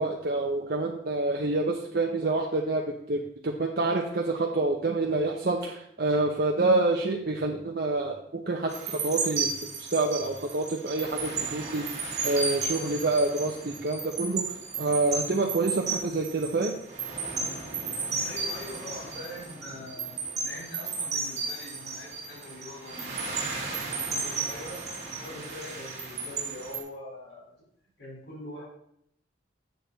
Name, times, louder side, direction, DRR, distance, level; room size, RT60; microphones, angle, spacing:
voice 1, 0.0-9.5 9.9-11.8 12.2-14.4 14.8-16.7, right 2 dB, 55° right, 0 dB, 0.7 m, -27 dB
sound 1, 8.7-26.8, right 4 dB, 35° right, 1.5 m, -34 dB
voice 2, 18.2-24.8 25.1-27.6 28.0-28.7, left 1 dB, 75° left, -5 dB, 3.8 m, -43 dB
8.0 x 6.8 x 3.9 m, 0.72 s
head